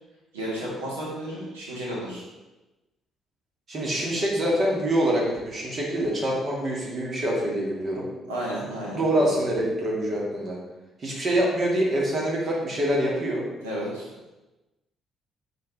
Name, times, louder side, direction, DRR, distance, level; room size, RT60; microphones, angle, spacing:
voice 1, 0.3-2.2 8.3-9.3 13.6-14.1, right 1 dB, 80° right, -6 dB, 2.1 m, -32 dB
voice 2, 3.7-8.0 8.9-10.6 11.0-13.5, right 1 dB, 45° right, -3 dB, 2.2 m, -25 dB
6.5 x 4.7 x 4.2 m, 1.1 s
figure-of-eight pair, 45°, 0 cm